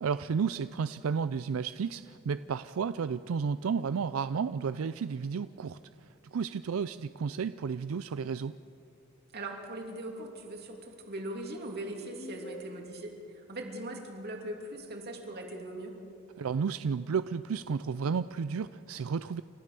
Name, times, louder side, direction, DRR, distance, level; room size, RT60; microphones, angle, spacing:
voice 1, 0.0-8.5 16.4-19.4, right 6 dB, 85° right, 13 dB, 0.4 m, -32 dB
voice 2, 9.3-16.0, right 1 dB, 50° right, 2 dB, 2.9 m, -40 dB
sound 1, 12.2-13.2, equal, 45° left, 1.8 m, -45 dB
30.0 x 13.5 x 6.9 m, 2.8 s
head